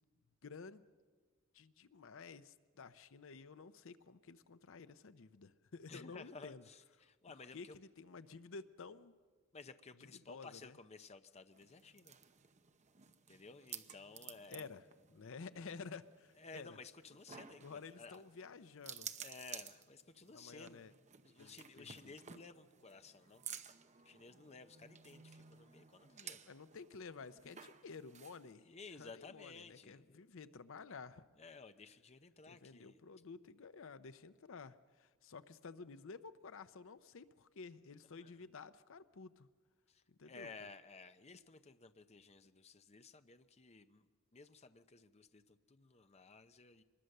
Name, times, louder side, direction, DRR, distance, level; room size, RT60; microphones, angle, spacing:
voice 1, 0.4-0.9 1.5-6.6 7.5-9.1 10.3-10.8 14.5-14.8 15.1-16.7 17.6-19.1 20.3-20.9 21.4-22.1 26.5-28.7 29.0-31.3 32.5-39.5 40.1-40.5, left 4 dB, 65° left, 13 dB, 0.6 m, -52 dB
voice 2, 5.9-7.8 9.5-12.2 13.3-14.8 16.4-18.2 19.2-20.8 21.2-23.4 24.0-26.4 28.6-30.2 31.4-33.0 38.0-38.4 39.9-46.8, left 4 dB, 30° left, 9 dB, 0.7 m, -55 dB
sound 1, 11.5-28.5, right 8 dB, 35° right, 0.8 m, -54 dB
24.5 x 20.5 x 6.6 m, 1.5 s
head